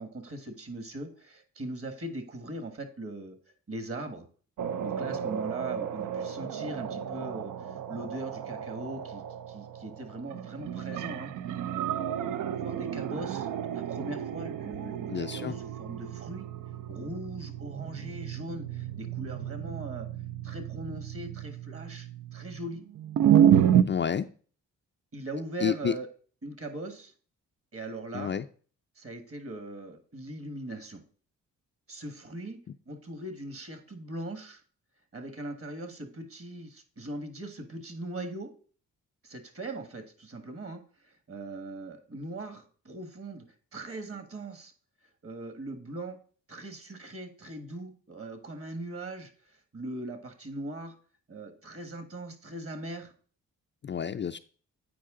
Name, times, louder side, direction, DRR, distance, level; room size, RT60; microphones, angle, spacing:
voice 1, 0.0-3.4 3.7-4.3 4.8-11.3 11.7-16.5 16.9-20.1 20.4-22.8 25.1-26.1 26.4-27.1 27.7-28.3 28.9-31.0 31.9-32.6 32.8-34.6 35.1-38.5 39.2-43.5 43.7-44.7 45.2-46.2 46.5-50.9 51.3-53.1, right 2 dB, 40° right, 8 dB, 1.7 m, -40 dB
sound 1, 4.6-23.8, right 10 dB, 65° right, 0.5 m, -30 dB
voice 2, 15.1-15.6 23.8-24.3 25.6-25.9 28.1-28.4 53.8-54.4, left 8 dB, 35° left, 7 dB, 0.4 m, -29 dB
8.4 x 4.7 x 3.7 m, 0.42 s
supercardioid pair, 55°, 33 cm